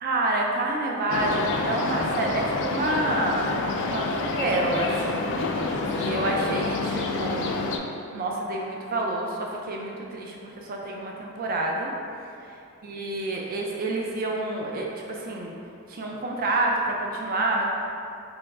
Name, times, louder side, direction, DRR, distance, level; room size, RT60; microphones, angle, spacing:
voice 1, 0.0-3.4 3.8-4.1 4.4-5.4 5.9-7.5 8.1-11.9 12.8-15.5 15.9-17.6, right 2 dB, 45° right, -1 dB, 0.4 m, -28 dB
sound 1, 1.1-7.8, left 3 dB, 60° left, 0.3 m, -28 dB
3.5 x 3.0 x 3.4 m, 2.6 s
head